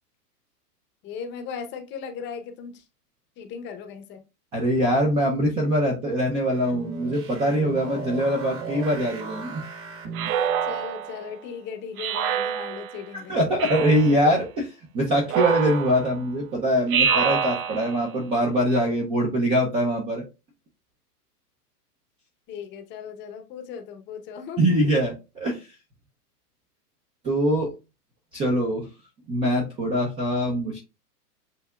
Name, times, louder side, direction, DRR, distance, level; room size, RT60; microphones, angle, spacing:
voice 1, 1.0-2.8 3.4-4.2 10.6-13.4 22.5-24.8, left 7 dB, 25° left, 7 dB, 0.7 m, -37 dB
voice 2, 4.5-9.6 13.3-20.2 24.6-25.6 27.2-27.7 28.3-28.9 29.3-30.8, equal, 10° right, 0 dB, 0.4 m, -23 dB
sound 1, 6.4-10.8, right 4 dB, 25° right, 1.1 m, -37 dB
Speech synthesizer, 10.1-11.3 12.0-13.0 13.6-14.3 15.3-16.2 16.9-18.1, right 7 dB, 60° right, 0.8 m, -26 dB
8.2 x 2.7 x 2.2 m, 0.28 s
hypercardioid pair, 130°, 48 cm